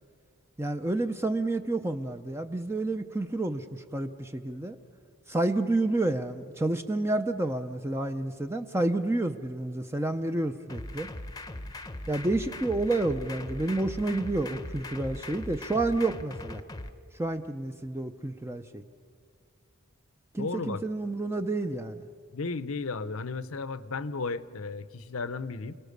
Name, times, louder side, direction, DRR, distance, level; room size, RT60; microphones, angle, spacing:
voice 1, 0.6-4.8 5.3-11.1 12.1-16.6 17.2-18.8 20.3-22.1, right 2 dB, 10° right, 7 dB, 0.5 m, -29 dB
sound 1, 10.7-16.9, left 2 dB, 15° left, 0.8 m, -40 dB
voice 2, 20.4-20.8 22.3-25.8, left 4 dB, 70° left, 15 dB, 0.8 m, -34 dB
29.5 x 18.5 x 6.7 m, 2.3 s
head